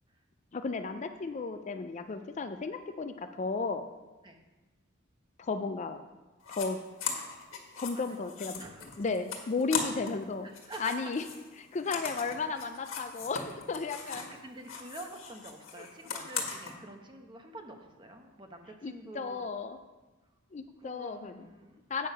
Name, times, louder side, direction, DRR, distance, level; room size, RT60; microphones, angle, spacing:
voice 1, 0.5-3.9 5.4-6.0 6.5-6.8 7.8-8.6 9.0-10.5 10.8-11.3 11.6-14.3 18.8-19.8 20.5-21.5 21.9-22.1, left 4 dB, 35° left, 8 dB, 0.4 m, -34 dB
sound 1, 6.4-6.7 7.0-10.2 10.5-14.4 14.6-16.7, left 6 dB, 75° left, 1.5 m, -39 dB
voice 2, 7.9-8.3 8.6-9.1 10.4-10.9 14.0-19.5 20.8-21.8, right 2 dB, 25° right, 4 dB, 0.9 m, -47 dB
8.6 x 6.4 x 5.6 m, 1.2 s
head